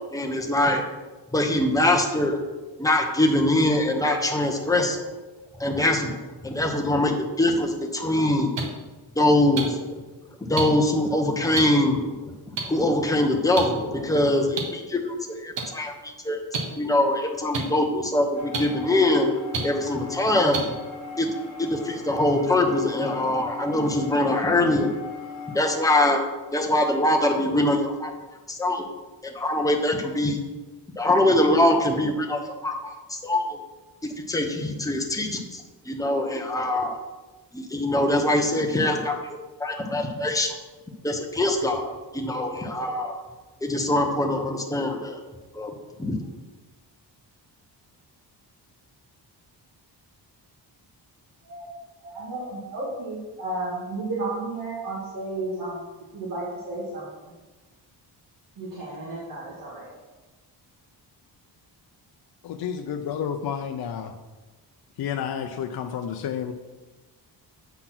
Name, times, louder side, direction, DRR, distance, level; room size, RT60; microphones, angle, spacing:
voice 1, 0.1-0.8 1.3-2.4 2.8-5.0 5.5-8.5 9.2-9.8 10.4-12.3 12.6-16.4 16.8-19.3 19.6-20.6 21.2-21.3 21.6-24.9 25.5-26.2 26.5-28.1 28.5-28.9 29.2-30.4 31.0-33.6 34.0-37.0 37.5-40.6 41.0-43.2 43.6-45.2 45.5-45.7 46.0-46.2, left 1 dB, 10° left, 2 dB, 0.8 m, -23 dB
sound 1, 8.6-8.7 9.6-9.7 10.6-10.7 11.5-11.6 12.6-12.7 13.6-13.7 14.6-14.7 15.6-15.7 16.5-16.6 17.5-17.6 18.5-18.6 19.5-19.6 20.5-20.6 21.5-21.6, right 5 dB, 85° right, 1.4 m, -26 dB
sound 2, 18.4-25.8, left 5 dB, 40° left, 1.4 m, -38 dB
voice 2, 52.0-55.8 56.1-57.1 58.6-59.9, right 2 dB, 50° right, -6 dB, 1.7 m, -33 dB
voice 3, 62.4-64.1 65.0-66.5, left 8 dB, 60° left, 5 dB, 0.5 m, -30 dB
8.0 x 4.0 x 5.9 m, 1.2 s
wide cardioid pair, 175°, 43 cm